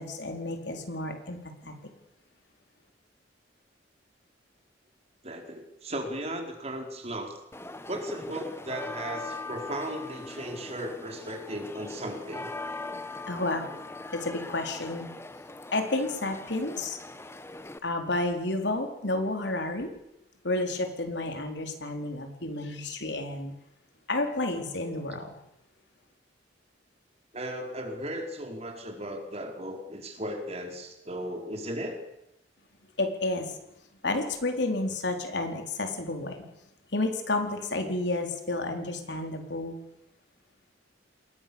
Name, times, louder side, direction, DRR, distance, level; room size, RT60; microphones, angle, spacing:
voice 1, 0.0-1.8 13.3-13.7 14.1-15.1 15.7-17.0 17.8-19.9 20.4-23.5 24.1-25.3 33.0-33.6 34.0-36.4 36.9-39.7, left 2 dB, 65° left, 4 dB, 4.2 m, -31 dB
voice 2, 5.2-7.3 7.9-12.5 27.3-32.0, right 1 dB, 35° right, 3 dB, 4.6 m, -36 dB
sound 1, 7.5-17.8, left 2 dB, 15° left, 1.2 m, -41 dB
29.0 x 21.0 x 7.2 m, 0.85 s
head